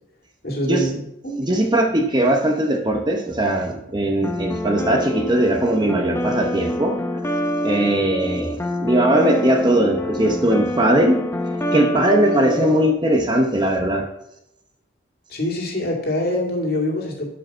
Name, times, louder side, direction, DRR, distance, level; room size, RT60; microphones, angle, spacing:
voice 1, 0.4-1.6 12.3-12.7 15.3-17.3, left 1 dB, 50° left, -1 dB, 2.4 m, -25 dB
voice 2, 1.4-7.0 7.6-11.2 11.7-14.1, right 1 dB, 20° right, 3 dB, 0.8 m, -19 dB
sound 1, 4.2-12.9, left 1 dB, 15° left, 0.6 m, -26 dB
12.0 x 5.2 x 5.4 m, 0.83 s
head